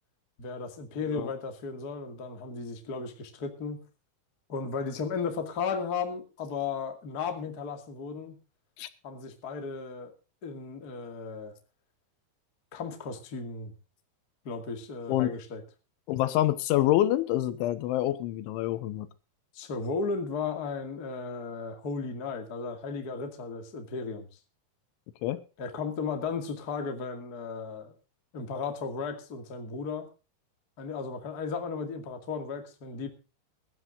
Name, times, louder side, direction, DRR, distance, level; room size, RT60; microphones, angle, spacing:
voice 1, 0.4-3.8 4.5-8.4 9.0-10.1 10.4-11.6 12.7-13.7 14.4-15.6 19.5-24.3 25.6-27.9 28.3-30.1 30.8-33.1, left 5 dB, 40° left, 5 dB, 1.4 m, -35 dB
voice 2, 16.1-19.1 25.2-25.4, left 14 dB, 85° left, 13 dB, 3.4 m, -26 dB
22.5 x 12.5 x 2.6 m, 0.33 s
omnidirectional pair, 5.5 m